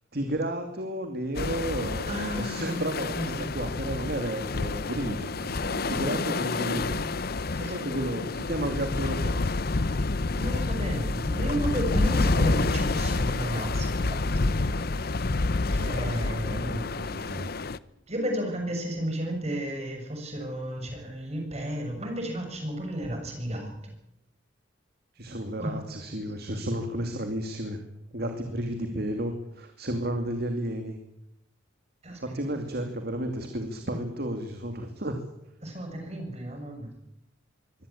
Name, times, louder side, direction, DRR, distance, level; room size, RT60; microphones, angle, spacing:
voice 1, 0.1-5.6 5.9-7.0 7.6-9.4 16.6-17.5 25.1-27.8 28.1-31.0 32.2-35.2, right 1 dB, 50° right, 5 dB, 2.6 m, -32 dB
sound 1, 1.3-17.8, left 3 dB, 50° left, 0.8 m, -28 dB
voice 2, 2.1-3.4 5.6-7.1 7.5-8.1 8.4-8.5 10.4-15.1 15.7-16.9 18.1-23.9 25.6-25.8 32.0-32.6 35.6-36.9, right 1 dB, 35° right, 3 dB, 6.7 m, -34 dB
24.0 x 17.5 x 8.6 m, 0.82 s
head